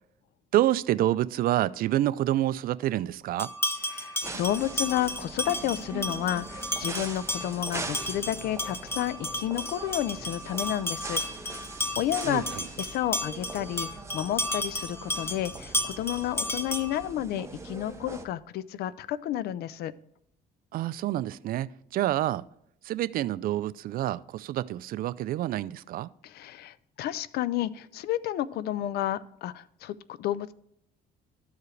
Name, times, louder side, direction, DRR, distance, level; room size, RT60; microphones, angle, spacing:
voice 1, 0.5-3.5 12.2-12.7 20.7-22.5 22.8-26.1, right 13 dB, 60° right, 0.4 m, -28 dB
sound 1, 3.4-17.1, left 1 dB, 15° left, 0.8 m, -33 dB
voice 2, 3.9-11.7 12.0-19.9 26.2-30.5, left 12 dB, 70° left, 0.5 m, -31 dB
sound 2, 4.2-18.2, right 3 dB, 15° right, 0.8 m, -42 dB
13.5 x 4.8 x 3.2 m
cardioid pair, 110°, 17 cm